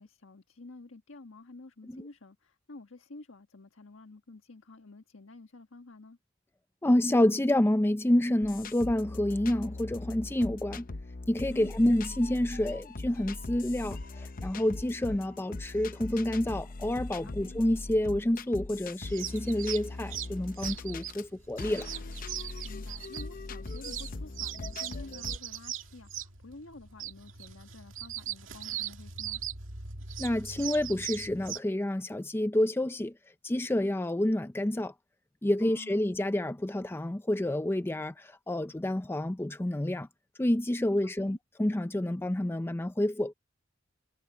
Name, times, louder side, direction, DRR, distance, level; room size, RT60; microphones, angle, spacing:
voice 1, 0.0-6.2 11.5-11.8 17.2-17.6 22.6-29.4 35.6-36.0 41.2-41.4, left 2 dB, 80° left, 1.5 m, -50 dB
voice 2, 6.8-10.8 11.3-21.9 30.2-33.1 33.4-34.9 35.4-40.1 40.4-43.3, left 1 dB, 10° left, 0.5 m, -28 dB
sound 1, 8.4-21.2 21.6-25.4, left 2 dB, 45° left, 0.7 m, -41 dB
sound 2, 19.1-31.6, right 10 dB, 75° right, 2.3 m, -40 dB
head